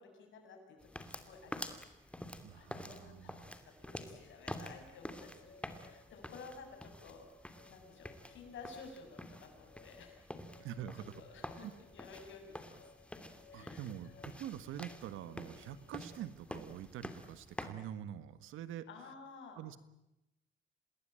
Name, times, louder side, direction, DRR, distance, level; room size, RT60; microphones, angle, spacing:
voice 1, 0.0-1.8 2.1-2.2 2.5-3.5 3.8-7.3 7.7-10.7 10.9-11.7 11.9-12.9 13.5-13.9 14.1-14.2 15.8-15.9 18.9-19.6, left 4 dB, 75° left, 3 dB, 7.2 m, -54 dB
sound 1, 0.8-17.7, left 1 dB, 5° left, 2.7 m, -49 dB
voice 2, 2.4-3.5 10.6-11.1 11.6-11.7 13.5-18.9 19.5-19.8, right 10 dB, 85° right, 14 dB, 1.5 m, -45 dB
sound 2, 4.8-16.3, left 5 dB, 50° left, 3.2 m, -63 dB
28.0 x 20.0 x 8.9 m, 0.90 s
cardioid pair, 90°, 20 cm